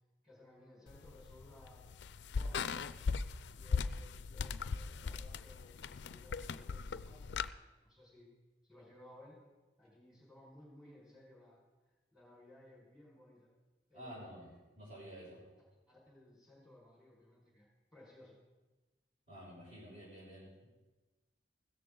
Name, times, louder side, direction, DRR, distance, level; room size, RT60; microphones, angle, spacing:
voice 1, 0.2-2.0 2.3-3.0 3.5-8.3 8.6-9.4 9.8-11.7 12.1-13.5 13.9-14.6 15.2-15.3 15.9-18.4, left 1 dB, 5° right, -4 dB, 5.0 m, -60 dB
sound 1, 0.9-7.5, left 5 dB, 70° left, 0.4 m, -39 dB
voice 2, 13.9-15.4 19.3-20.7, equal, 35° right, -7 dB, 6.0 m, -51 dB
16.0 x 13.5 x 3.8 m, 1.2 s
head